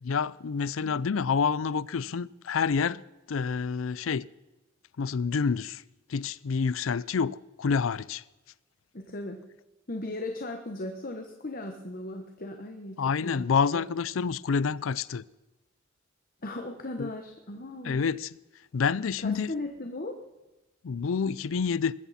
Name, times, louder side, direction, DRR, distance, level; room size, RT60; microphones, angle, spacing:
voice 1, 0.0-3.0 3.3-4.3 5.0-5.8 6.1-8.2 13.0-15.2 17.0-17.1 17.8-18.3 18.7-19.5 20.8-21.9, left 5 dB, 85° left, 0.5 m, -28 dB
voice 2, 8.9-9.4 9.9-13.5 13.7-13.8 16.4-18.1 19.2-20.2, left 2 dB, 45° left, 1.2 m, -37 dB
21.0 x 14.0 x 4.3 m
head